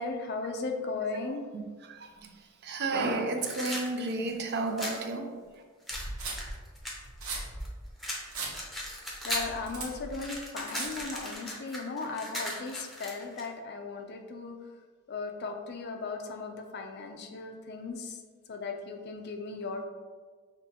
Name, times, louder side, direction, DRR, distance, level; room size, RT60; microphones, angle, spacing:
voice 1, 0.0-1.4 9.2-14.6 15.1-18.2 18.5-19.8, left 3 dB, 50° left, 4 dB, 0.5 m, -37 dB
voice 2, 1.5-5.3, right 2 dB, 50° right, 5 dB, 0.5 m, -32 dB
sound 1, 3.4-5.0 5.9-7.7 8.0-9.6 9.9-13.5, equal, ahead, 0.7 m, -37 dB
sound 2, 5.9-11.2, right 2 dB, 85° right, 1.1 m, -39 dB
6.0 x 2.9 x 2.9 m, 1.5 s
head